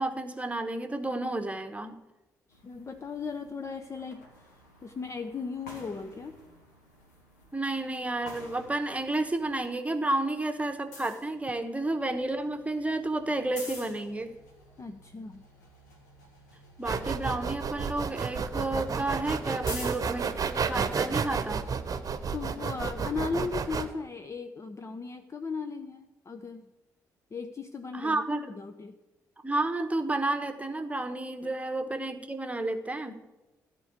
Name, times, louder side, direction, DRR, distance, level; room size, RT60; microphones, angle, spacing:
voice 1, 0.0-2.0 7.5-14.3 16.8-21.6 27.9-28.4 29.4-33.2, right 2 dB, 15° right, 8 dB, 1.2 m, -31 dB
sound 1, 2.5-9.5 9.9-20.7, left 2 dB, 80° left, 1.9 m, -50 dB
voice 2, 2.5-6.4 14.8-15.5 22.3-26.6 27.3-29.0, left 4 dB, 35° left, 7 dB, 0.8 m, -37 dB
sound 2, 16.8-23.8, right 5 dB, 40° right, 1.0 m, -31 dB
13.5 x 4.6 x 8.2 m, 1.0 s
figure-of-eight pair, 40°, 9 cm